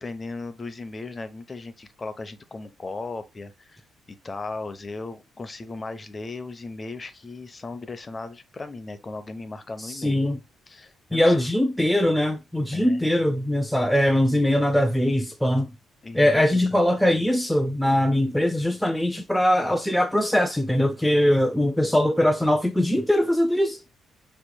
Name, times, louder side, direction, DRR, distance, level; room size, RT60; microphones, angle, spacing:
voice 1, 0.0-3.8 4.1-10.2 10.7-11.5 12.7-13.2 16.0-16.4 16.7-16.8, left 3 dB, 30° left, 0.8 m, -37 dB
voice 2, 9.8-10.4 11.1-15.7 16.1-23.8, left 1 dB, ahead, 0.5 m, -21 dB
6.6 x 3.0 x 2.2 m
cardioid pair, 90°, 0 cm